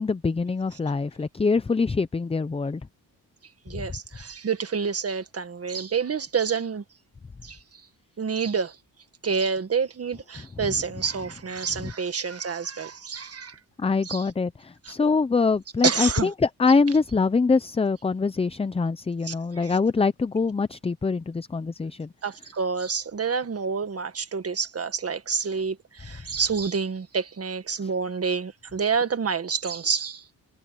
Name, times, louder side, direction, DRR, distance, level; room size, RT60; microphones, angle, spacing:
voice 1, 0.0-2.8 11.8-11.9 13.8-16.3 16.6-22.1, left 4 dB, 15° left, 0.5 m, -24 dB
voice 2, 3.7-6.8 7.4-7.6 8.2-8.8 9.2-13.6 14.0-14.3 14.8-15.0 15.8-16.3 19.2-19.8 22.2-30.2, right 5 dB, 40° right, 1.7 m, -28 dB
wide cardioid pair, 125°, 38 cm